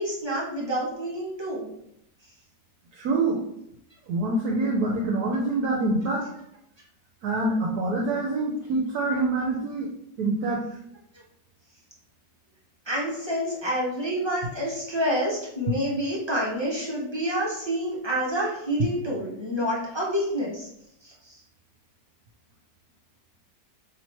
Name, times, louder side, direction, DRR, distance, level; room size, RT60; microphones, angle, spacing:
voice 1, 0.0-1.7 12.9-20.7 21.0-21.3, equal, 25° right, -5 dB, 0.5 m, -28 dB
voice 2, 3.0-3.4 4.1-6.3 7.2-9.9 10.2-10.6, right 2 dB, 70° right, -1 dB, 1.0 m, -25 dB
3.1 x 3.0 x 4.3 m, 0.75 s
omnidirectional pair, 1.9 m